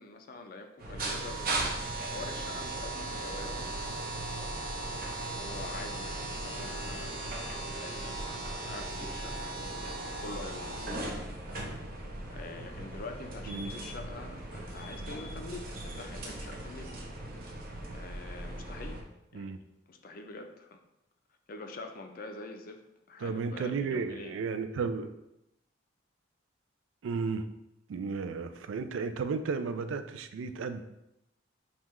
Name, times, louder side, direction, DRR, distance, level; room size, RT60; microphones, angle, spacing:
voice 1, 0.0-1.6 2.1-3.6 3.9-4.4 5.2-8.2 8.6-11.2 12.3-17.0 17.9-19.0 19.3-19.6 19.9-20.8 21.5-24.3, left 3 dB, 50° left, 5 dB, 0.4 m, -45 dB
sound 1, 0.8-19.0, right 2 dB, 50° right, 0.7 m, -37 dB
voice 2, 23.2-25.1 27.0-27.5 27.9-30.8, right 5 dB, 85° right, 10 dB, 0.3 m, -33 dB
5.5 x 2.3 x 3.0 m, 0.88 s
head